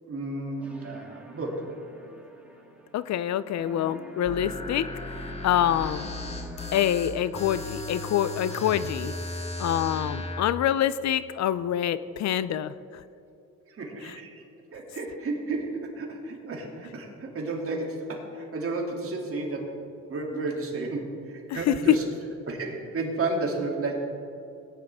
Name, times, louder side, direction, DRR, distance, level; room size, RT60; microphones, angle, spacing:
voice 1, 0.1-1.7 13.7-14.4 14.7-19.7 20.1-22.0 22.5-24.0, right 3 dB, 45° right, -1 dB, 2.8 m, -32 dB
sound 1, 0.6-3.3 3.6-7.2, equal, 5° right, 1.9 m, -46 dB
voice 2, 2.9-5.1 5.4-6.1 6.7-9.1 9.6-13.0 14.0-14.2 21.5-22.0, left 10 dB, 65° left, 15 dB, 0.5 m, -26 dB
sound 2, 4.2-10.4, left 2 dB, 20° left, 1.9 m, -36 dB
18.5 x 10.0 x 3.6 m, 2.7 s
cardioid pair, 90°, 30 cm